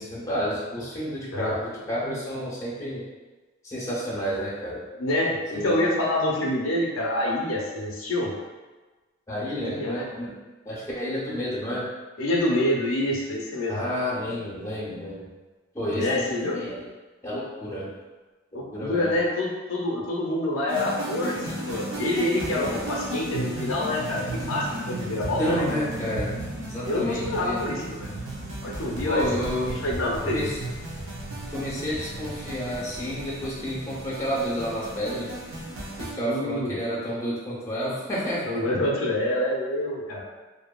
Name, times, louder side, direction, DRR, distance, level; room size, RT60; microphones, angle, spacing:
voice 1, 0.0-3.0 3.6-4.8 5.5-5.8 9.3-10.4 10.6-11.9 13.7-15.3 15.7-16.9 17.2-17.9 18.5-19.2 24.9-25.0 25.4-26.4 26.7-27.6 29.0-29.7 30.2-30.6 31.5-35.3 36.0-38.6, equal, 15° left, -7 dB, 0.6 m, -30 dB
voice 2, 5.0-8.3 9.6-10.0 12.2-13.8 15.8-16.6 18.5-25.6 26.8-28.1 28.6-30.5 36.2-36.8 38.5-40.2, left 1 dB, 85° left, -2 dB, 0.5 m, -27 dB
sound 1, 20.7-36.1, right 1 dB, 70° right, 0.7 m, -34 dB
2.6 x 2.6 x 2.2 m, 1.3 s
head